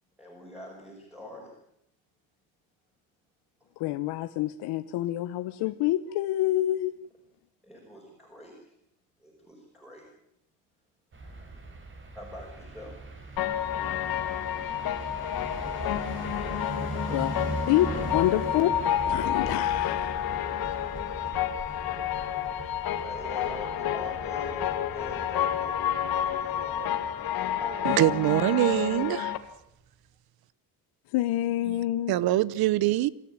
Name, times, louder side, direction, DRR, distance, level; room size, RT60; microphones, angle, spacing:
voice 1, 0.2-1.5 3.6-3.7 7.6-8.7 9.2-10.1 11.2-11.3 12.1-13.0 15.5-17.3 23.0-27.0 27.3-28.2, left 1 dB, ahead, 5.7 m, -45 dB
voice 2, 3.8-6.9 17.1-17.3 17.7-18.7 19.0-20.3 31.1-32.1, left 14 dB, 80° left, 1.1 m, -27 dB
sound 1, 11.1-29.1, right 2 dB, 30° right, 4.1 m, -40 dB
sound 2, 13.4-29.4, left 10 dB, 65° left, 2.1 m, -30 dB
voice 3, 27.8-29.3 31.7-31.8 32.1-33.1, right 15 dB, 65° right, 1.0 m, -24 dB
26.5 x 13.0 x 8.9 m
cardioid pair, 150°, 39 cm